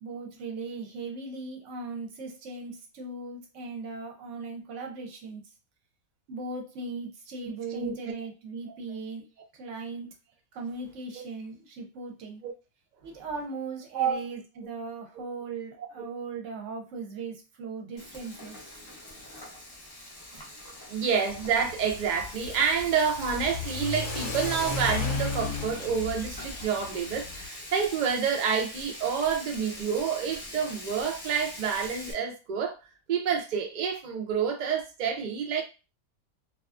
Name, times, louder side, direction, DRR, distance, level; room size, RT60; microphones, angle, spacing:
voice 1, 0.0-5.5 6.3-9.3 9.5-10.1 10.5-12.4 13.0-18.8, right 3 dB, 65° right, 0.9 m, -38 dB
Frying (food), 18.0-32.1, left 1 dB, 35° left, 0.3 m, -43 dB
voice 2, 20.9-32.8 33.1-35.6, right 6 dB, 90° right, 0.4 m, -28 dB
Car / Accelerating revving vroom, 21.3-27.5, left 4 dB, 60° left, 0.9 m, -35 dB
2.5 x 2.3 x 2.4 m
omnidirectional pair, 1.5 m